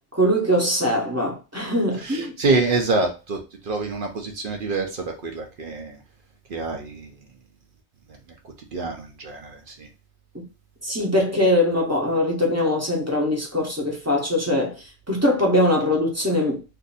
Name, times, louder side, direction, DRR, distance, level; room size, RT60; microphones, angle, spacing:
voice 1, 0.1-2.3 10.8-14.7 15.1-16.8, left 1 dB, 15° right, 0.7 m, -22 dB
voice 2, 2.0-6.0 6.5-7.1 8.7-9.9, right 3 dB, 55° right, 0.6 m, -26 dB
2.6 x 2.5 x 3.9 m
omnidirectional pair, 1.4 m